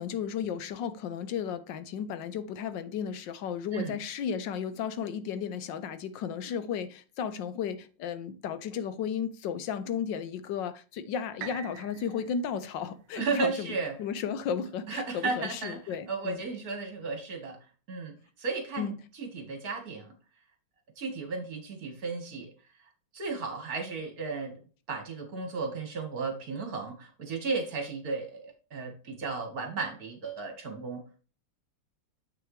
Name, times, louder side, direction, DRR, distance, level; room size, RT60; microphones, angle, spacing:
voice 1, 0.0-16.4 18.8-18.9, left 7 dB, 75° left, 1.4 m, -34 dB
sound 1, 11.4-15.3 15.9-16.0, right 8 dB, 75° right, 1.3 m, -48 dB
voice 2, 13.1-14.0 14.9-15.8 16.1-17.6 17.9-18.9 19.2-20.1 21.0-22.5 23.1-24.5 24.9-31.0, right 4 dB, 50° right, 2.1 m, -34 dB
7.6 x 6.2 x 3.2 m
omnidirectional pair, 2.0 m